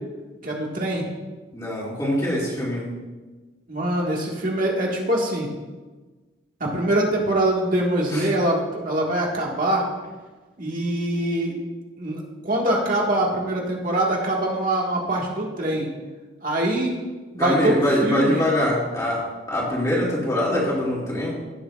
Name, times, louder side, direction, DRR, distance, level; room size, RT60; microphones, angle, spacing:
voice 1, 0.4-1.1 3.7-5.5 6.6-9.8 10.6-11.5 12.0-15.9 16.4-16.9 17.3-18.5, right 1 dB, 45° right, -2 dB, 1.9 m, -23 dB
voice 2, 1.5-2.9 8.1-8.2 17.4-21.4, left 1 dB, 15° left, -6 dB, 2.5 m, -23 dB
17.0 x 6.4 x 2.5 m, 1.3 s
head